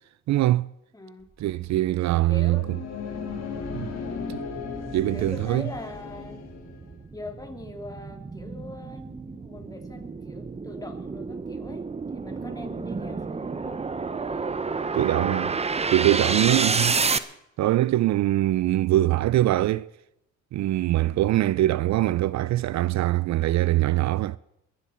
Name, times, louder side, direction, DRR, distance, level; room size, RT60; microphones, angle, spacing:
voice 1, 0.3-0.7 1.4-2.6 3.7-3.9 4.3-4.4 4.9-5.7 14.9-15.6 15.9-17.0 17.6-19.9 20.5-24.4, right 15 dB, 65° right, 0.4 m, -23 dB
voice 2, 0.9-1.2 2.3-2.7 4.1-4.5 5.1-6.4 7.1-11.8 12.1-13.8 16.5-16.8, left 2 dB, 10° left, 2.9 m, -42 dB
sound 1, 2.3-7.0, left 5 dB, 60° left, 3.8 m, -36 dB
sound 2, 3.1-17.2, right 4 dB, 20° right, 0.7 m, -30 dB
23.0 x 11.0 x 4.4 m
cardioid pair, 90°, 30 cm